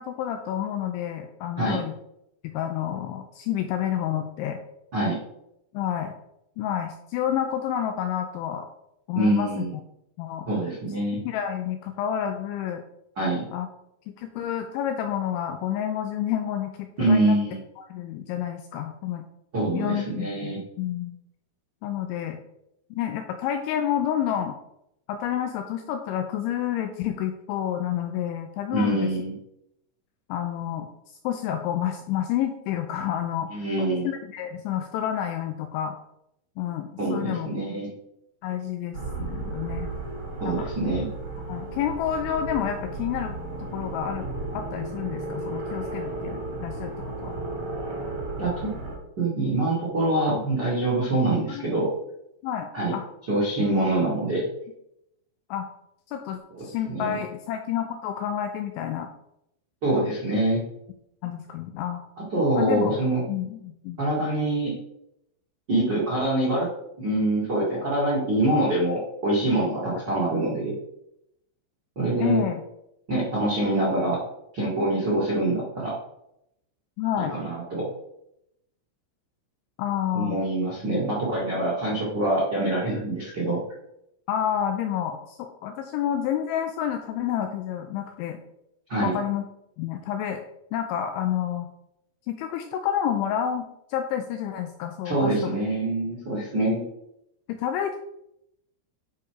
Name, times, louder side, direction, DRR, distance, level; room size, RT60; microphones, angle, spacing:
voice 1, 0.0-1.9 2.5-4.6 5.7-6.1 6.6-8.7 9.1-9.6 10.2-10.5 11.3-12.8 13.5-13.7 14.1-17.4 17.8-19.2 19.7-21.2 21.8-22.4 22.9-24.6 25.1-29.1 30.3-33.5 34.0-36.0 36.6-37.5 38.4-39.9 40.4-40.7 41.5-43.4 43.7-46.9 47.2-47.3 50.4-50.5 51.5-51.6 52.4-53.1 55.5-55.7 56.1-59.1 61.2-62.0 62.5-63.0 63.3-64.0 72.2-72.6 77.0-77.3 79.8-80.4 84.3-88.4 89.0-89.4 89.8-90.4 90.7-91.7 92.3-95.3 96.7-96.8 97.5-98.0, left 10 dB, 90° left, 6 dB, 2.7 m, -29 dB
voice 2, 9.1-9.7 10.5-11.2 13.1-13.5 17.0-17.6 19.5-20.6 28.7-29.3 33.5-34.1 37.0-37.9 40.4-41.1 48.4-48.7 49.2-51.9 52.7-52.9 53.3-54.4 56.5-57.2 59.8-60.6 62.2-63.2 64.0-64.8 65.7-66.7 67.0-70.7 71.9-72.4 73.1-74.2 74.5-76.0 77.2-77.9 80.1-83.6 88.9-89.2 95.0-96.8, right 1 dB, 75° right, -6 dB, 1.0 m, -25 dB
sound 1, 38.9-49.0, right 2 dB, 45° right, 2.0 m, -34 dB
9.8 x 4.6 x 4.9 m, 0.81 s
omnidirectional pair, 6.0 m